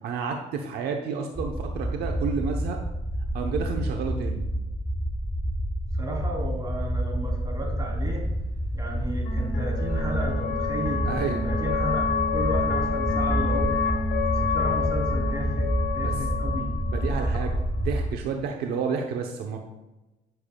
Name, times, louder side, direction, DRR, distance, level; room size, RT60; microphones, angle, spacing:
voice 1, 0.0-2.8 3.3-4.5 11.1-11.4 16.0-16.2 16.9-19.6, right 6 dB, 70° right, 3 dB, 0.9 m, -30 dB
sound 1, 1.4-18.2, equal, 5° left, 0.4 m, -28 dB
voice 2, 6.0-8.2 8.7-11.0 11.4-13.7 14.3-15.7 15.9-16.7, right 1 dB, 25° right, -2 dB, 3.3 m, -33 dB
sound 2, 7.8-18.1, left 5 dB, 85° left, 1.5 m, -30 dB
13.5 x 7.0 x 2.3 m, 1.0 s
cardioid pair, 110°, 17 cm